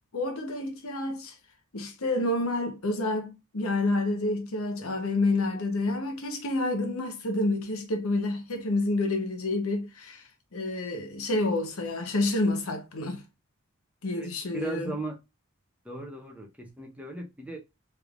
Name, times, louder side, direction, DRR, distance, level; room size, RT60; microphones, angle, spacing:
voice 1, 0.1-1.3 1.7-10.2 10.5-13.2 14.0-14.9, left 2 dB, 85° left, 0.9 m, -29 dB
voice 2, 14.2-15.2 15.8-17.6, right 2 dB, 5° right, 0.6 m, -37 dB
3.3 x 3.3 x 2.4 m
head